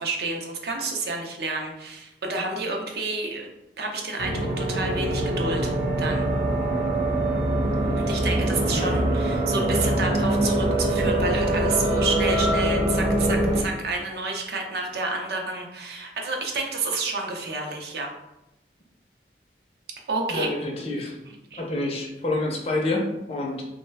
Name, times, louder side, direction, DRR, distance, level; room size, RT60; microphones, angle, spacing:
voice 1, 0.0-3.5 3.8-5.7 6.0-6.3 8.0-18.1 20.1-20.5 21.5-21.6, right 3 dB, 60° right, 2 dB, 0.5 m, -29 dB
sound 1, 4.2-13.6, right 1 dB, 45° right, 0.9 m, -23 dB
voice 2, 20.3-21.2 21.6-23.6, left 2 dB, 35° left, 0 dB, 0.5 m, -28 dB
3.1 x 2.1 x 3.3 m, 0.92 s
head